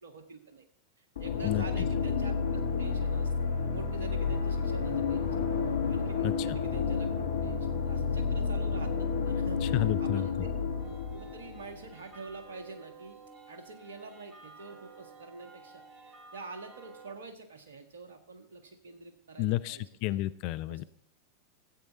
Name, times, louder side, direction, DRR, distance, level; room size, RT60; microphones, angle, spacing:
voice 1, 0.0-0.6 1.2-5.4 5.9-10.5 11.1-13.2 13.5-20.2 20.7-20.8, right 3 dB, 65° right, 6 dB, 1.7 m, -46 dB
sound 1, 1.2-11.9, left 5 dB, 65° left, 1.2 m, -30 dB
voice 2, 9.7-10.2 19.4-20.8, left 15 dB, 45° left, 15 dB, 0.4 m, -30 dB
sound 2, 10.8-17.2, right 4 dB, 35° right, 2.0 m, -52 dB
13.5 x 8.6 x 4.1 m, 0.63 s
figure-of-eight pair, 90°, 0 cm